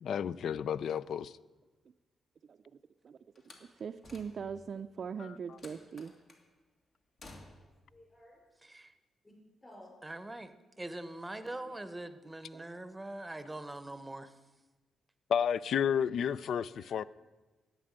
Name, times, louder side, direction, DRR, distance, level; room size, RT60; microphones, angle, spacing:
voice 1, 0.0-1.3 15.3-17.0, left 8 dB, 70° left, 0.4 m, -31 dB
Slam, 3.4-4.7 5.6-6.5 7.2-7.8, left 2 dB, 50° left, 2.0 m, -54 dB
voice 2, 3.6-6.1 12.5-12.8, right 6 dB, 50° right, 0.4 m, -41 dB
voice 3, 7.4-8.4 9.2-9.3 9.6-9.9 11.3-11.8 16.7-17.0, left 1 dB, 20° left, 5.1 m, -57 dB
voice 4, 10.0-14.3, right 2 dB, 10° right, 0.9 m, -43 dB
11.0 x 8.8 x 8.9 m
cardioid pair, 115°, 0 cm